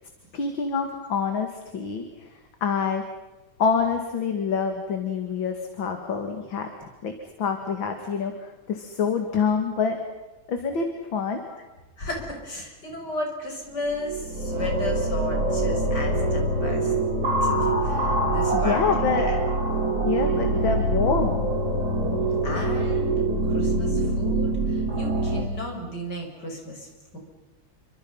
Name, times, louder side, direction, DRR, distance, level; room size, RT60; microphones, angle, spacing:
voice 1, 0.3-2.3 2.6-3.0 3.6-7.1 7.4-10.0 10.5-11.4 18.5-19.3 20.0-21.5, left 5 dB, 70° left, 5 dB, 2.9 m, -26 dB
voice 2, 12.0-16.9 17.4-19.4 20.2-20.6 22.0-27.2, left 1 dB, 50° left, 2 dB, 6.6 m, -35 dB
sound 1, 13.8-25.4, right 2 dB, 50° right, 4.4 m, -24 dB
29.0 x 25.5 x 5.6 m, 1.1 s
omnidirectional pair, 2.2 m